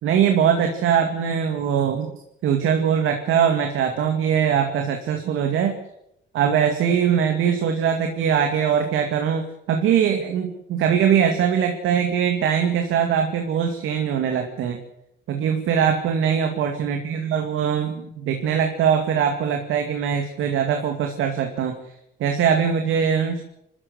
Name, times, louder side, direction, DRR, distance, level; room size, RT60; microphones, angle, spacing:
voice 1, 0.0-2.1 2.4-5.8 6.3-14.8 15.3-21.8 22.2-23.4, right 8 dB, 85° right, 4 dB, 2.5 m, -21 dB
25.5 x 13.5 x 8.1 m, 0.79 s
cardioid pair, 90°, 20 cm